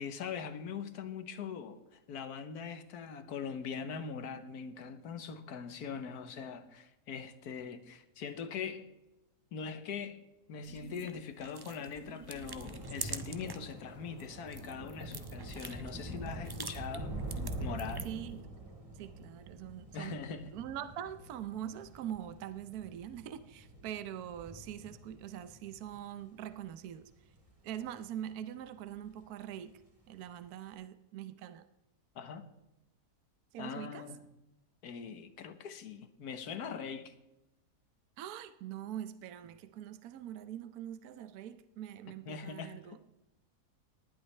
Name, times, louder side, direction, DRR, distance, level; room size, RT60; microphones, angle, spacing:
voice 1, 0.0-8.9 9.5-10.2 10.5-17.2 17.6-18.1 19.9-20.5 32.1-32.5 33.6-34.2 34.8-37.1 42.3-42.8, left 6 dB, 70° left, 1.5 m, -42 dB
sound 1, 10.6-13.7 14.1-18.3, right 3 dB, 40° right, 0.3 m, -46 dB
Thunder / Rain, 11.9-28.4 28.8-29.2 29.5-29.7, right 1 dB, 20° right, 2.0 m, -45 dB
voice 2, 18.0-18.6 18.9-20.2 20.5-27.1 27.6-29.8 30.1-31.7 33.5-34.1 38.2-43.0, right 10 dB, 70° right, 1.2 m, -43 dB
19.0 x 11.5 x 3.3 m
omnidirectional pair, 1.7 m